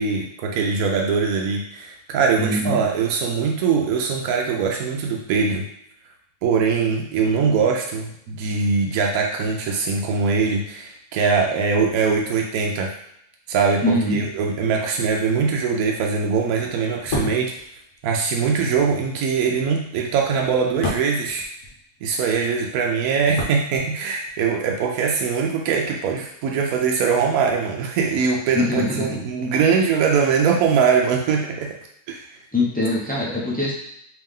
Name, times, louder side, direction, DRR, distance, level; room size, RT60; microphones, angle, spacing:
voice 1, 0.0-5.6 6.4-12.9 13.5-13.8 14.1-17.5 18.0-21.5 22.0-31.7 32.1-32.2, right 5 dB, 70° right, 0 dB, 1.0 m, -22 dB
voice 2, 2.4-2.8 13.8-14.2 28.5-29.1 32.5-33.7, left 2 dB, 10° left, -6 dB, 0.6 m, -22 dB
sound 1, 16.9-22.2 22.5-24.3 24.6-24.8, left 2 dB, 55° left, 1.1 m, -32 dB
3.4 x 3.0 x 3.6 m, 0.76 s
omnidirectional pair, 1.6 m